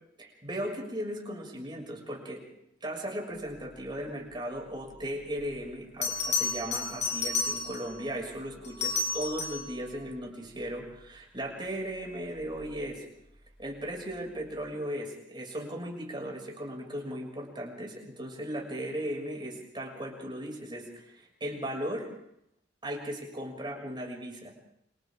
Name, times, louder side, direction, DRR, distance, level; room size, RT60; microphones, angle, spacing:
voice 1, 0.2-2.4 2.8-13.0 13.6-22.1 22.8-24.5, equal, 25° right, 0 dB, 6.5 m, -37 dB
Bell, 5.4-5.5 6.0-8.0 8.6-9.7 12.4-12.7, left 4 dB, 40° left, 7.0 m, -31 dB
29.5 x 27.5 x 3.8 m, 0.76 s
head